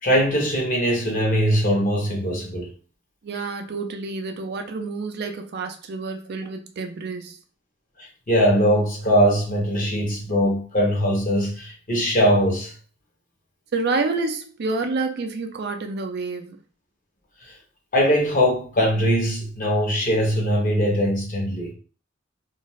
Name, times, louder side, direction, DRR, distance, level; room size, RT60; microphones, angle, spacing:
voice 1, 0.0-2.7 8.0-12.7 17.9-21.7, equal, 45° left, 1.0 m, -21 dB
voice 2, 3.2-7.4 13.7-16.6, right 3 dB, 55° right, 0.4 m, -28 dB
2.5 x 2.4 x 3.0 m
head